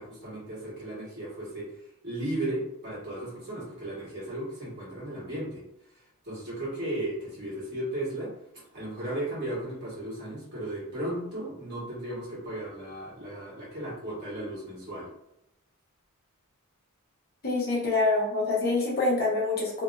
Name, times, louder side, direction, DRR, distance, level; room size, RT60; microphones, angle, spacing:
voice 1, 0.0-1.7 2.0-5.6 6.2-8.3 8.7-15.1, right 1 dB, 50° right, -7 dB, 1.5 m, -35 dB
voice 2, 17.4-19.8, left 3 dB, 45° left, -4 dB, 0.9 m, -26 dB
2.9 x 2.6 x 2.4 m, 0.82 s
head